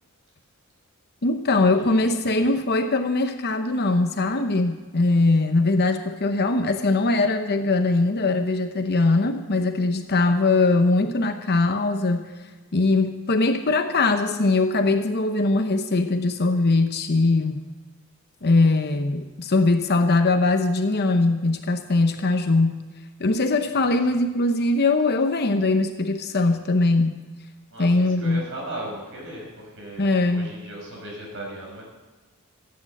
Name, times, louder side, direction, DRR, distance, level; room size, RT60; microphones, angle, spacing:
voice 1, 1.2-12.3 12.7-17.6 18.4-22.8 23.2-27.1 27.8-28.5 30.0-30.5, left 2 dB, 45° left, 7 dB, 0.8 m, -21 dB
voice 2, 1.8-2.3 23.5-23.9 27.7-31.8, right 1 dB, 60° right, -1 dB, 5.5 m, -38 dB
15.0 x 8.7 x 7.6 m, 1.2 s
head